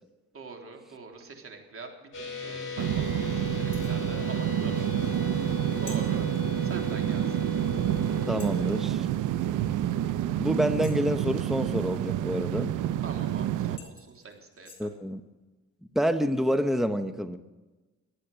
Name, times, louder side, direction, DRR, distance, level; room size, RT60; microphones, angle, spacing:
voice 1, 0.3-6.2 6.6-7.5 13.0-14.9, right 4 dB, 45° right, 3 dB, 3.5 m, -45 dB
sound 1, 2.1-8.8, left 5 dB, 40° left, 7.3 m, -38 dB
sound 2, 2.8-13.8, right 12 dB, 85° right, 0.8 m, -28 dB
sound 3, 3.7-4.0 5.9-6.0 7.5-7.6 8.4-8.7 10.8-11.2 13.2-13.3 13.8-14.9, left 4 dB, 20° left, 4.7 m, -48 dB
voice 2, 8.3-9.1 10.4-12.7 14.8-15.2 15.9-17.4, equal, ahead, 10 dB, 0.9 m, -27 dB
23.5 x 8.5 x 6.8 m, 1.2 s
cardioid pair, 90°, 30 cm